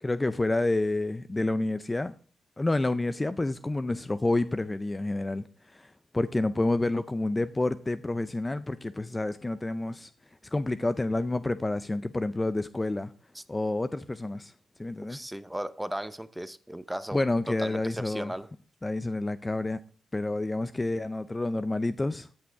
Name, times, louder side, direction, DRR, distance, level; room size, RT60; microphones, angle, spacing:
voice 1, 0.0-2.1 2.6-10.1 10.4-13.1 13.5-14.5 14.8-15.2 17.1-18.3 18.8-19.8 20.1-22.3, left 2 dB, 20° left, 0.5 m, -29 dB
voice 2, 15.1-17.2 17.5-18.5, right 1 dB, 5° right, 0.8 m, -36 dB
14.0 x 6.1 x 4.6 m
cardioid pair, 85°, 0 cm